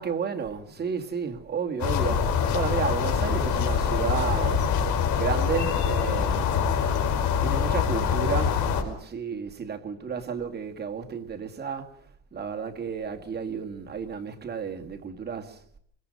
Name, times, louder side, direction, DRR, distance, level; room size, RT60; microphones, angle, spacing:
voice 1, 0.0-4.7 5.1-6.6 7.4-11.9 12.3-15.6, right 6 dB, 30° right, 2.2 m, -32 dB
sound 1, 1.8-8.8, left 7 dB, 55° left, 4.9 m, -24 dB
27.0 x 22.0 x 5.5 m
cardioid pair, 155°, 34 cm